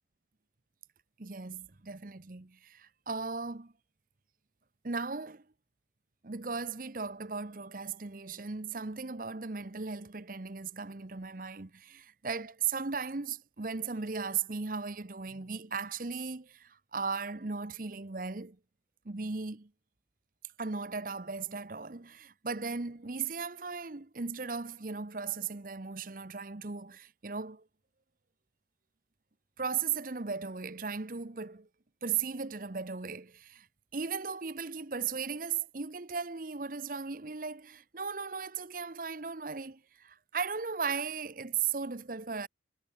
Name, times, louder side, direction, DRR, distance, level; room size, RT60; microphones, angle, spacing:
voice 1, 1.2-3.7 4.8-5.4 6.2-18.6 19.0-19.7 20.6-27.6 29.6-31.7 32.0-33.7 33.9-42.5, right 5 dB, 50° right, 0.9 m, -37 dB
head